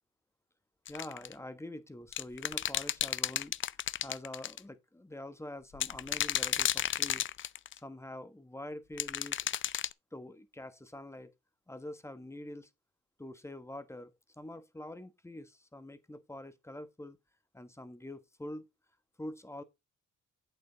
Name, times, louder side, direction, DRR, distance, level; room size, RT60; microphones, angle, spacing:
sound 1, 0.9-1.3 2.1-4.6 5.7-7.8 9.0-9.9, left 10 dB, 40° left, 0.5 m, -32 dB
voice 1, 0.9-7.3 7.7-9.4 10.1-11.3 11.7-12.7 13.2-17.2 17.5-18.7 19.2-19.6, left 1 dB, 10° left, 1.3 m, -45 dB
8.4 x 6.8 x 4.0 m
cardioid pair, 90°, 30 cm